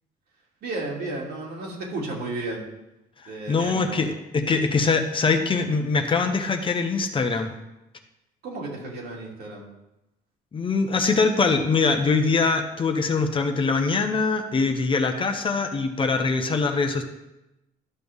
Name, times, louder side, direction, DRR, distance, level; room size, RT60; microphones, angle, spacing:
voice 1, 0.6-2.6 3.3-4.0 8.4-9.7, right 2 dB, 70° right, -2 dB, 2.7 m, -33 dB
voice 2, 3.5-7.5 10.5-17.0, left 4 dB, 30° left, 5 dB, 0.9 m, -23 dB
12.5 x 6.1 x 3.6 m, 0.93 s
cardioid pair, 110°, 17 cm